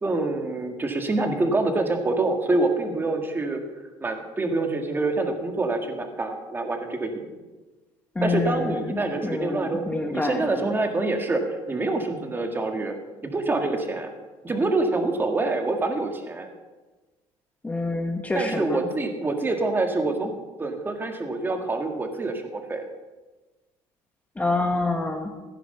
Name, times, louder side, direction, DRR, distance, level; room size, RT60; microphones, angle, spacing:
voice 1, 0.0-3.6 4.0-7.2 8.2-12.9 13.3-14.1 14.4-16.5 18.3-20.3 20.6-22.8, right 2 dB, 20° right, 5 dB, 1.8 m, -26 dB
voice 2, 8.1-10.8 17.6-18.9 24.4-25.3, left 2 dB, 10° left, 4 dB, 1.1 m, -27 dB
15.5 x 9.9 x 5.5 m, 1.2 s
cardioid pair, 135°, 12 cm